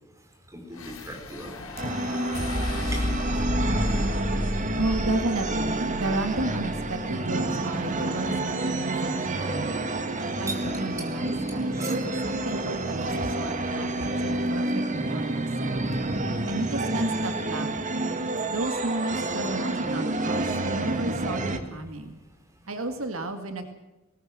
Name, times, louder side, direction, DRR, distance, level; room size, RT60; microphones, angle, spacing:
voice 1, 0.5-1.5 2.2-2.3 2.9-3.1 3.3-4.9 10.2-10.7 11.7-11.9, right 2 dB, 15° right, 2 dB, 4.5 m, -40 dB
sound 1, 0.7-7.1, left 1 dB, 85° left, 5.0 m, -32 dB
sound 2, 1.6-17.8, equal, 30° left, 5.7 m, -44 dB
sound 3, 1.8-21.6, right 2 dB, 35° right, 2.0 m, -29 dB
voice 2, 4.8-9.8 10.4-15.9 16.5-18.0 18.5-22.2 22.7-23.7, right 2 dB, 75° right, 7 dB, 2.0 m, -33 dB
20.5 x 19.0 x 7.6 m, 1.1 s
head